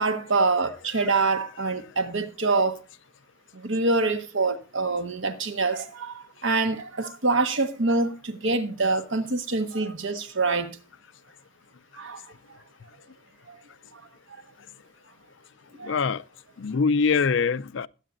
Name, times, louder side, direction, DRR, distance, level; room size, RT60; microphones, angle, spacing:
voice 1, 0.0-2.7 3.6-6.1 6.4-10.7 12.0-12.2 15.8-16.0, right 3 dB, 75° right, 1.3 m, -25 dB
voice 2, 15.8-16.2 16.6-17.9, left 5 dB, 65° left, 0.5 m, -23 dB
21.0 x 8.3 x 2.6 m
head